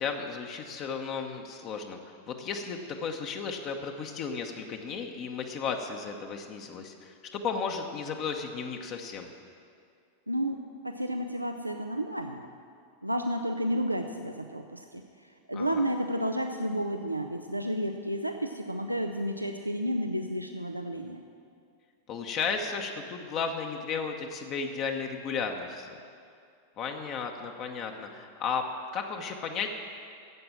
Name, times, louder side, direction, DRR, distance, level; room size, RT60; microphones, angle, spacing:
voice 1, 0.0-2.0 2.3-9.3 15.5-15.9 22.1-25.9 26.8-28.7 28.9-29.7, left 5 dB, 35° left, 3 dB, 0.9 m, -34 dB
voice 2, 10.3-12.5 13.0-15.0 15.5-21.2, equal, 85° right, 5 dB, 0.5 m, -31 dB
12.0 x 7.9 x 7.4 m, 2.3 s
figure-of-eight pair, 90°, 0 cm